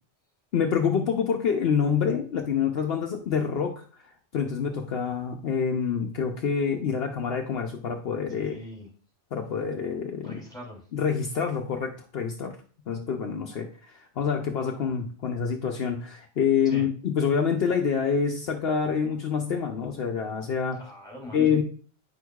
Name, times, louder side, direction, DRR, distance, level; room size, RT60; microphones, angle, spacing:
voice 1, 0.5-8.6 9.3-10.4 10.9-12.6 12.9-20.8 21.3-21.6, left 6 dB, 65° left, 3 dB, 0.9 m, -27 dB
voice 2, 8.4-8.9 10.2-10.8 16.6-16.9 20.8-21.6, left 1 dB, 5° left, -3 dB, 2.8 m, -41 dB
9.0 x 6.2 x 2.3 m, 0.42 s
omnidirectional pair, 1.2 m